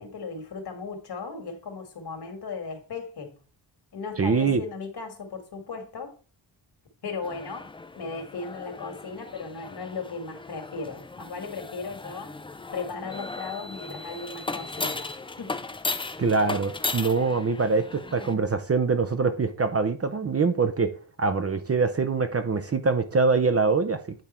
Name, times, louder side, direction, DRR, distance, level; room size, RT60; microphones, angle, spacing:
voice 1, 0.0-3.4 3.9-6.2 7.0-12.4 12.7-15.1 15.4-15.6 17.2-17.3, left 4 dB, 55° left, 1.9 m, -37 dB
voice 2, 4.2-4.6 16.2-20.9 21.2-24.2, right 4 dB, 30° right, 0.7 m, -24 dB
sound 1, 7.2-18.3, left 3 dB, 10° left, 0.4 m, -36 dB
9.1 x 3.6 x 4.3 m
cardioid pair, 85°, 46 cm